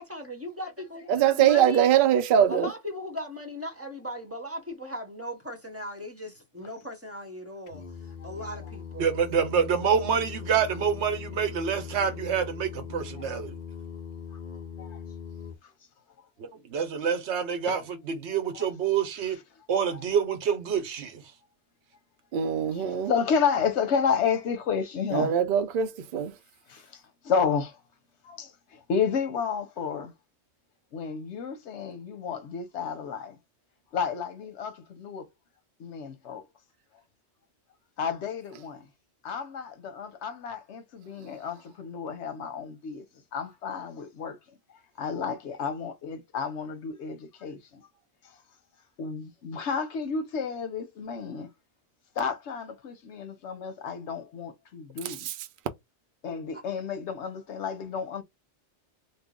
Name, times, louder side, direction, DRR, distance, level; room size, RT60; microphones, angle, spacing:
voice 1, 0.0-1.9 2.5-7.8 8.2-9.1 56.5-56.6, left 1 dB, 15° right, 0.7 m, -38 dB
voice 2, 1.1-2.7 22.3-23.1 25.1-26.3 55.0-55.3, right 9 dB, 60° right, 0.7 m, -22 dB
Singing, 7.7-15.6, left 7 dB, 50° left, 0.7 m, -40 dB
voice 3, 9.0-13.5 16.4-19.4 19.7-21.2, right 7 dB, 80° right, 1.1 m, -27 dB
voice 4, 22.7-25.3 26.7-26.9 27.2-27.8 28.2-30.1 30.9-33.4 33.9-35.3 35.8-36.4 38.0-38.8 39.2-43.0 43.3-44.4 45.0-47.8 49.0-51.5 52.2-55.3 56.2-58.2, left 6 dB, 85° left, 1.0 m, -31 dB
3.2 x 2.1 x 3.6 m
omnidirectional pair, 1.2 m